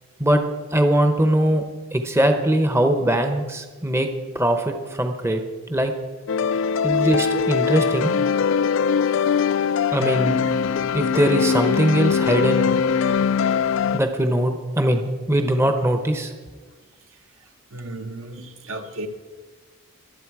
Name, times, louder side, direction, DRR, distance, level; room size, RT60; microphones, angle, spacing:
voice 1, 0.7-1.6 1.9-4.1 4.3-5.4 5.7-5.9 6.8-8.1 9.9-10.5 10.9-12.8 13.9-16.3, right 1 dB, 10° right, 6 dB, 0.7 m, -21 dB
sound 1, 6.3-14.0, left 6 dB, 60° left, 0.3 m, -21 dB
voice 2, 17.7-19.1, right 2 dB, 65° right, 5 dB, 1.2 m, -34 dB
23.0 x 8.2 x 4.7 m, 1.4 s
head